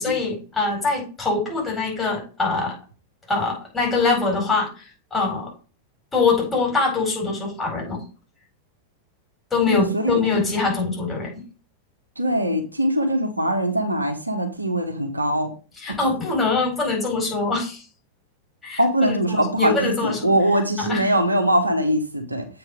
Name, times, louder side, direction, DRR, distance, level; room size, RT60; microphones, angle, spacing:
voice 1, 0.0-2.8 3.3-5.5 6.1-8.0 9.5-11.4 15.8-17.8 18.6-20.3 20.8-21.0, left 4 dB, 15° left, -2 dB, 4.7 m, -23 dB
voice 2, 9.7-10.2 12.2-15.5 18.8-22.5, right 1 dB, 85° right, 4 dB, 1.2 m, -22 dB
7.9 x 4.5 x 5.1 m, 0.35 s
figure-of-eight pair, 90°, 0 cm